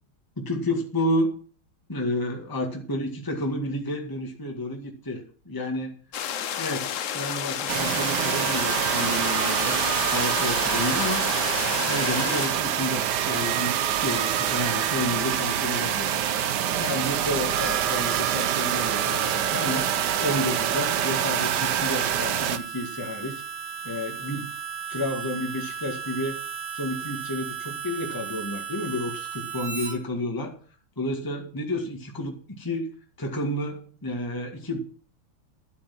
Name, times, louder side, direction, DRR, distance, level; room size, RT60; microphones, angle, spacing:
voice 1, 0.4-1.3 1.9-5.9 6.6-9.8 10.1-11.3 11.8-16.1 16.8-19.9 20.2-23.4 23.8-24.5 24.9-26.4 26.7-30.6 31.0-32.9 33.2-34.8, left 1 dB, 10° left, 1 dB, 1.8 m, -30 dB
sound 1, 6.1-12.5, left 9 dB, 85° left, 0.6 m, -31 dB
sound 2, 7.7-22.6, right 10 dB, 65° right, 1.2 m, -26 dB
Harmonica, 17.5-30.0, right 8 dB, 40° right, 2.3 m, -35 dB
12.0 x 8.6 x 5.9 m, 0.41 s
omnidirectional pair, 2.3 m